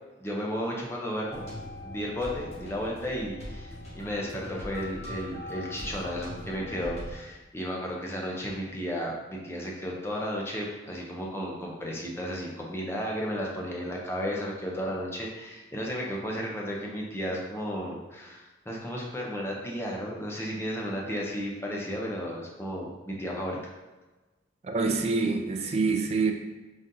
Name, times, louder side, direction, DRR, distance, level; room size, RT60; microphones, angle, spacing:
voice 1, 0.2-1.4 1.8-23.6, equal, 15° left, -2 dB, 0.6 m, -33 dB
sound 1, 1.3-7.1, left 1 dB, 35° left, 1.3 m, -41 dB
voice 2, 24.6-26.3, right 4 dB, 35° right, 4 dB, 0.3 m, -26 dB
4.0 x 3.8 x 2.6 m, 1.2 s
head